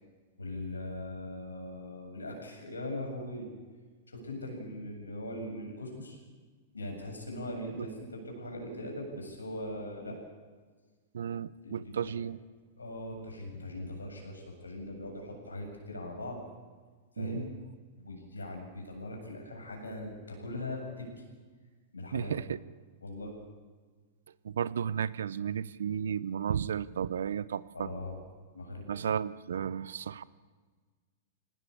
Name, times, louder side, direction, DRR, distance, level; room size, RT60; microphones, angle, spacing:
voice 1, 0.4-3.4 4.1-6.2 6.7-10.2 11.6-12.1 12.8-16.4 17.1-17.5 18.0-21.1 21.9-22.4 23.0-23.3 27.7-28.2 28.5-28.9, left 1 dB, 85° left, 2 dB, 7.7 m, -40 dB
voice 2, 11.1-12.4 17.2-17.4 22.1-22.6 24.4-27.9 28.9-30.2, right 8 dB, 70° right, 18 dB, 0.9 m, -33 dB
24.5 x 19.0 x 8.5 m, 1.4 s
figure-of-eight pair, 100°, 0 cm